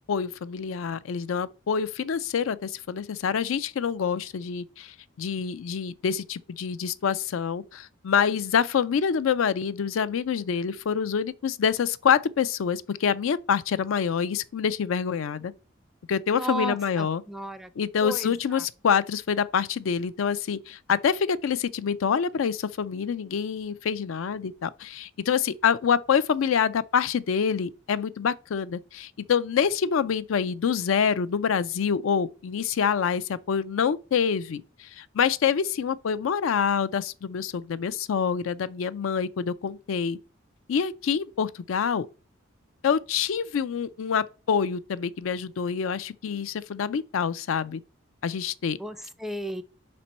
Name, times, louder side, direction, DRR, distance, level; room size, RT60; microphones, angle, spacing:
voice 1, 0.1-15.5 16.1-17.2 17.8-40.2 40.7-42.1 42.8-47.8 48.2-48.8, left 7 dB, 80° left, 0.4 m, -26 dB
voice 2, 16.4-17.7 18.0-18.6 48.8-49.6, right 1 dB, ahead, 0.4 m, -34 dB
5.1 x 4.3 x 5.3 m
head